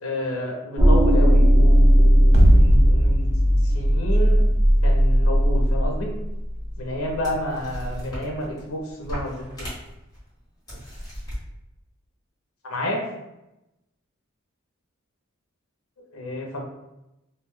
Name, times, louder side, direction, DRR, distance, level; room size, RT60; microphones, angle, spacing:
voice 1, 0.0-3.3 3.6-4.4 4.8-6.1 6.8-9.3 12.6-13.0 16.0-16.6, left 1 dB, 75° left, 0 dB, 0.7 m, -30 dB
sound 1, 0.8-5.9, equal, 20° right, 0.6 m, -17 dB
sound 2, 2.3-8.5, equal, 60° right, 0.4 m, -21 dB
sound 3, 6.1-6.2 6.9-7.0 7.2-8.7 9.0-10.2 10.7-11.4, equal, 20° left, 1.1 m, -36 dB
2.6 x 2.2 x 3.5 m, 0.92 s
head